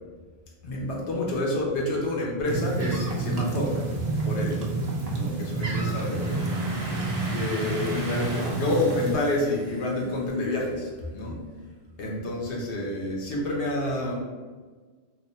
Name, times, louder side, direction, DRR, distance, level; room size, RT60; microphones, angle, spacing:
voice 1, 0.6-3.8 4.2-4.6 5.1-6.5 7.2-11.4 12.0-14.2, left 1 dB, 90° left, -2 dB, 1.1 m, -28 dB
sound 1, 2.4-9.1, right 3 dB, 45° right, 0.6 m, -29 dB
Domestic sounds home sounds, 5.8-10.6, right 2 dB, 70° right, 0.9 m, -40 dB
3.0 x 2.1 x 4.0 m, 1.4 s
omnidirectional pair, 1.1 m